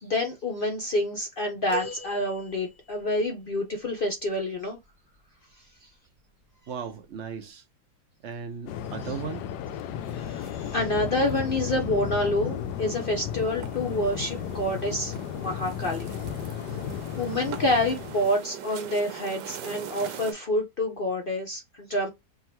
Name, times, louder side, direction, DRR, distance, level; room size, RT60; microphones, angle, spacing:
voice 1, 0.0-4.8 10.1-16.1 16.5-16.6 17.2-22.1, left 1 dB, 55° left, 0.6 m, -28 dB
sound 1, 1.7-3.1 5.5-5.7 7.0-7.1, left 2 dB, 15° right, 1.3 m, -38 dB
voice 2, 6.7-7.6 8.2-9.4, right 6 dB, 60° right, 0.8 m, -36 dB
Waves surf, 8.7-18.3, left 8 dB, 90° left, 1.2 m, -34 dB
sound 2, 10.0-20.3, right 9 dB, 85° right, 1.3 m, -44 dB
3.6 x 2.3 x 4.3 m
omnidirectional pair, 1.8 m